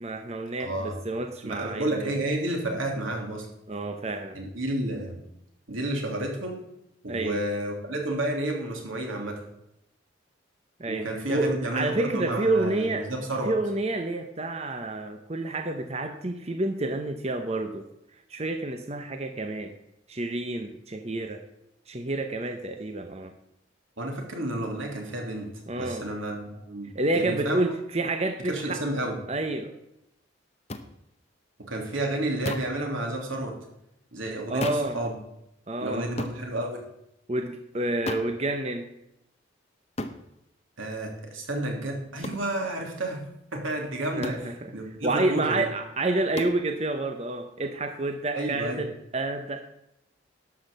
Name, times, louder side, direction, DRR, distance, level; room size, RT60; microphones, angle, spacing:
voice 1, 0.0-2.2 3.7-4.4 7.1-7.5 10.8-13.0 13.4-17.8 18.3-19.8 20.1-21.4 21.9-23.3 25.7-26.0 26.9-28.8 29.3-29.7 34.5-35.0 35.7-36.1 37.3-38.8 44.2-44.7 45.0-49.6, right 2 dB, 30° right, 5 dB, 0.8 m, -29 dB
voice 2, 0.6-1.0 1.4-3.5 4.3-5.2 5.7-6.6 7.0-9.4 10.9-13.5 24.0-25.5 25.8-27.6 28.4-29.2 31.7-33.5 34.1-35.2 35.8-36.8 40.8-43.2 43.5-45.6 48.3-48.8, right 1 dB, 85° right, 1 dB, 3.0 m, -31 dB
sound 1, 30.7-30.9 32.4-32.8 34.6-35.0 36.2-36.4 38.1-38.4 40.0-40.2 42.2-42.5 44.2-44.5 46.4-46.6, left 2 dB, 30° left, 0.8 m, -33 dB
12.0 x 6.1 x 7.4 m, 0.83 s
head